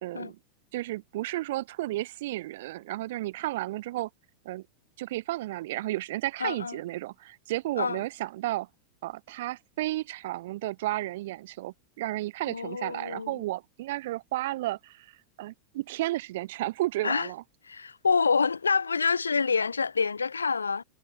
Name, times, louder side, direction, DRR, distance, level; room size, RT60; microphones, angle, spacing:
voice 1, 0.0-0.4 0.7-4.1 4.4-4.6 5.0-8.7 9.0-17.4, right 17 dB, 55° right, 0.9 m, -33 dB
voice 2, 6.4-6.8 7.8-8.0 12.5-13.4 17.0-17.3 17.7-20.8, left 5 dB, 75° left, 2.6 m, -27 dB
figure-of-eight pair, 90°, 0 cm